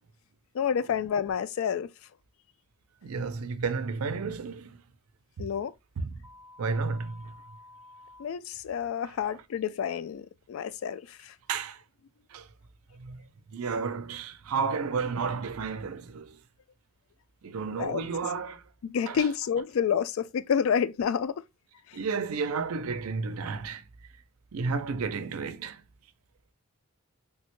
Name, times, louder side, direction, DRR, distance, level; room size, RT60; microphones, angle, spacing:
voice 1, 0.5-1.9 5.4-5.7 8.2-11.4 17.8-18.0 18.8-21.4 21.9-22.0, left 7 dB, 70° left, 0.3 m, -29 dB
voice 2, 3.0-4.8 5.4-5.5 6.0-6.2 6.6-7.3 11.5-11.8 12.3-12.5 12.9-16.4 17.4-18.6 19.1-19.3 21.9-23.8 24.5-25.8, right 5 dB, 90° right, 0.5 m, -32 dB
sound 1, 6.2-8.2, left 2 dB, 30° right, 0.6 m, -51 dB
3.4 x 2.1 x 2.9 m
head